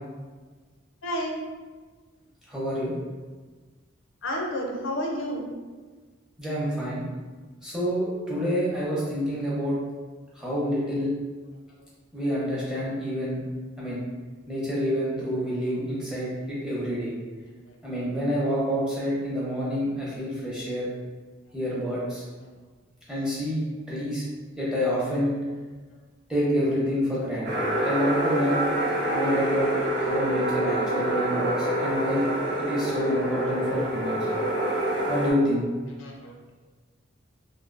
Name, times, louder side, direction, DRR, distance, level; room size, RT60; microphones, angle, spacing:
voice 1, 1.0-1.4 4.2-5.5 32.9-33.0 36.0-36.3, equal, 70° left, 0 dB, 0.5 m, -30 dB
voice 2, 2.5-2.9 6.4-7.0 7.6-9.8 10.4-11.1 12.1-13.4 13.8-14.0 14.5-17.1 17.8-20.9 21.5-22.2 23.1-24.2 24.6-25.3 26.3-28.6 29.1-29.7 29.9-32.2 32.7-34.2 35.1-35.6, equal, 5° right, -8 dB, 0.7 m, -27 dB
sound 1, 27.4-35.3, right 1 dB, 55° right, 0.7 m, -26 dB
3.0 x 2.6 x 2.5 m, 1.4 s
head